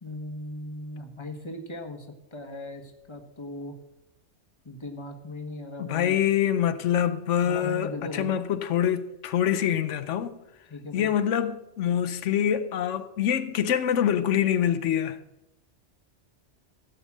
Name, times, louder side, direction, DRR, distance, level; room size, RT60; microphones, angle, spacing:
voice 1, 0.0-3.8 4.6-6.3 7.4-8.3 10.7-11.1, left 2 dB, 25° left, 1.3 m, -38 dB
voice 2, 5.8-10.4 10.9-15.2, left 9 dB, 85° left, 1.0 m, -25 dB
15.5 x 5.4 x 7.4 m
omnidirectional pair, 1.2 m